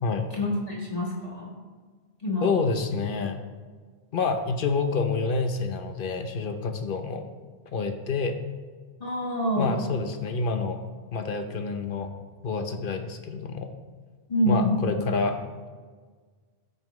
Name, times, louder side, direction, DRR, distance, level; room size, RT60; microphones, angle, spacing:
voice 1, 0.3-1.5 2.2-2.5 9.0-9.8 14.3-14.7, equal, 40° left, -6 dB, 1.7 m, -26 dB
voice 2, 2.4-3.4 4.1-7.2 7.7-8.4 9.6-10.8 11.1-12.1 12.4-13.7 14.5-15.4, left 4 dB, 55° left, 7 dB, 0.9 m, -28 dB
14.0 x 5.5 x 3.1 m, 1.5 s
omnidirectional pair, 1.1 m